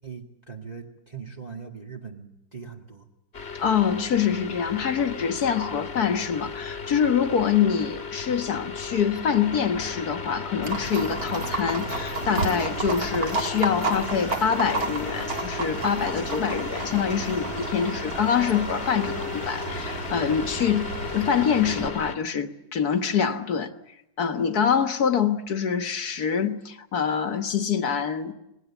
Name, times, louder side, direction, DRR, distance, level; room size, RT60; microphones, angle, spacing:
voice 1, 0.0-3.1, right 6 dB, 20° right, 2.0 m, -40 dB
sound 1, 3.3-22.1, left 5 dB, 35° left, 1.7 m, -35 dB
voice 2, 3.6-23.7 24.2-28.3, left 7 dB, 60° left, 1.8 m, -25 dB
Livestock farm animals working animals, 10.6-21.9, right 3 dB, 50° right, 2.6 m, -32 dB
sound 2, 12.1-20.1, equal, 75° right, 7.3 m, -42 dB
27.0 x 21.0 x 7.1 m
omnidirectional pair, 2.0 m